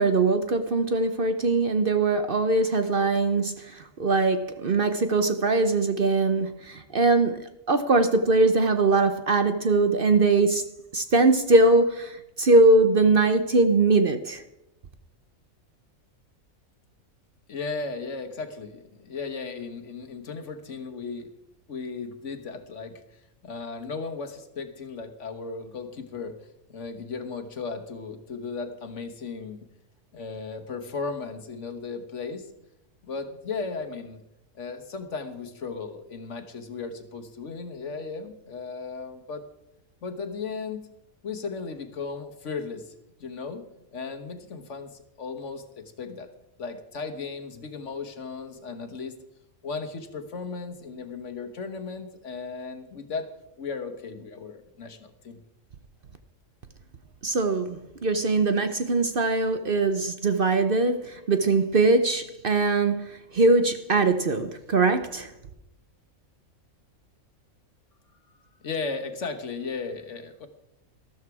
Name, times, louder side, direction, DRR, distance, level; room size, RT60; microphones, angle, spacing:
voice 1, 0.0-10.7 10.9-14.4 57.2-65.3, right 3 dB, 50° right, 0.9 m, -22 dB
voice 2, 17.5-21.3 21.7-26.4 26.7-29.7 30.1-32.5 33.0-34.2 34.5-39.4 40.0-40.8 41.2-42.9 43.2-43.6 43.9-46.3 46.6-49.2 49.6-53.3 53.6-55.4 68.6-70.5, left 4 dB, 60° left, 1.5 m, -36 dB
13.5 x 13.0 x 4.8 m
omnidirectional pair, 1.4 m